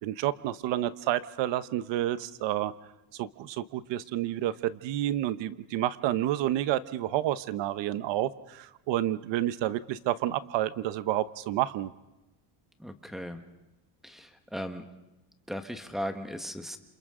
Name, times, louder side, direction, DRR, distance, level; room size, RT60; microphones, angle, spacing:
voice 1, 0.0-2.7 3.1-11.9, right 13 dB, 60° right, 14 dB, 1.0 m, -29 dB
voice 2, 12.8-13.4 14.0-14.8 15.5-16.8, equal, ahead, 6 dB, 1.3 m, -37 dB
29.0 x 27.0 x 3.8 m, 0.99 s
cardioid pair, 155°, 48 cm